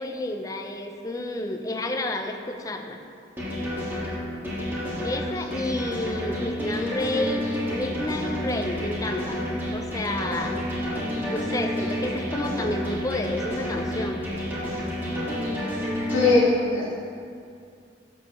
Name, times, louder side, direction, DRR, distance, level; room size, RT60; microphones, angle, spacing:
voice 1, 0.0-3.0 5.0-9.4 9.7-10.6 11.3-14.2, left 1 dB, 20° left, 5 dB, 0.5 m, -30 dB
sound 1, 3.4-16.3, left 1 dB, 10° right, 1.6 m, -30 dB
voice 2, 16.1-16.9, left 3 dB, 80° left, -8 dB, 1.5 m, -20 dB
10.0 x 7.0 x 3.0 m, 2.3 s
head